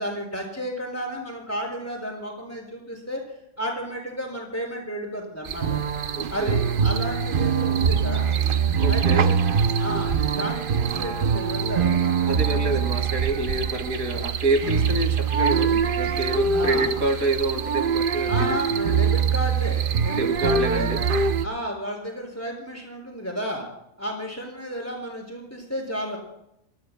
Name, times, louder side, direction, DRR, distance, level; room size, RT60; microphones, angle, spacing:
voice 1, 0.0-3.2 3.6-5.8 6.3-8.3 8.9-9.4 9.8-12.3 14.3-14.4 16.2-16.9 18.3-20.9 21.4-23.7 24.0-26.2, equal, 10° left, 0 dB, 5.7 m, -32 dB
sound 1, 5.4-21.4, right 6 dB, 45° right, 0.8 m, -23 dB
voice 2, 6.1-6.6 8.8-9.3 12.3-18.6 20.1-21.0, right 2 dB, 85° right, 5 dB, 2.7 m, -27 dB
30.0 x 19.5 x 2.2 m, 0.79 s
omnidirectional pair, 1.4 m